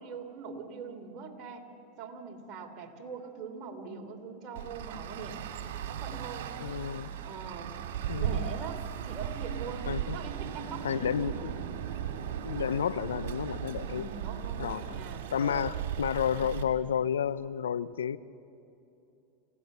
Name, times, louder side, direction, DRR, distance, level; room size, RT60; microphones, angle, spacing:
voice 1, 0.0-1.7 2.0-5.4 5.9-6.5 7.2-7.7 8.1-11.5 13.9-15.7 16.3-16.5, right 5 dB, 40° right, 2 dB, 3.4 m, -42 dB
Traffic noise roadway noise, 4.5-16.6, right 10 dB, 70° right, 2.2 m, -37 dB
voice 2, 6.6-7.1 8.1-8.5 9.9-10.2 10.8-11.6 12.4-14.1 14.6-15.0 15.3-18.2, left 8 dB, 90° left, 17 dB, 0.6 m, -31 dB
29.5 x 17.5 x 6.8 m, 2.8 s
hypercardioid pair, 105°, 0 cm